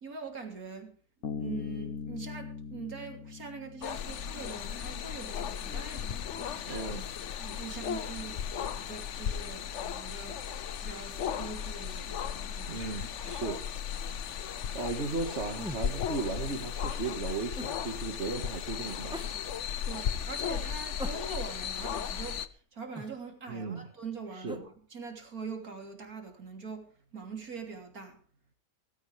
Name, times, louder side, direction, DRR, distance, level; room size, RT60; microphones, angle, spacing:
voice 1, 0.0-1.0 1.4-6.9 7.4-10.4 10.8-13.4 19.8-28.2, right 5 dB, 80° right, 3.6 m, -43 dB
Bass guitar, 1.2-4.7, left 6 dB, 75° left, 1.7 m, -40 dB
sound 1, 3.8-22.5, left 8 dB, 60° left, 1.1 m, -36 dB
voice 2, 6.7-7.1 12.7-13.6 14.7-19.2 23.5-23.8 24.4-24.6, right 3 dB, 50° right, 2.0 m, -36 dB
sound 2, 15.6-15.9 17.6-17.8 19.1-19.3 21.0-21.6 23.0-23.2 24.5-24.7, equal, 5° right, 1.3 m, -41 dB
18.0 x 15.5 x 3.4 m
omnidirectional pair, 1.5 m